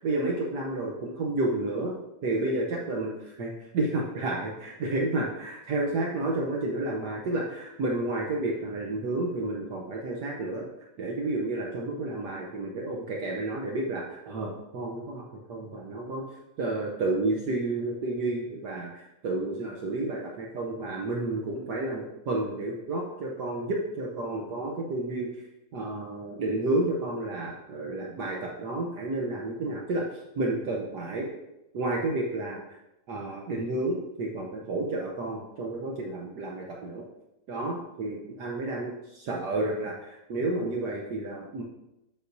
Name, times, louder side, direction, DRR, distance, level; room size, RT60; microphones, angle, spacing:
voice 1, 0.0-2.0 2.2-10.7 11.0-16.2 16.6-25.3 25.7-30.1 30.4-31.3 31.7-32.6 33.1-37.0 37.5-41.6, right 2 dB, 65° right, -1 dB, 1.3 m, -31 dB
7.4 x 6.1 x 2.7 m, 0.91 s
omnidirectional pair, 2.2 m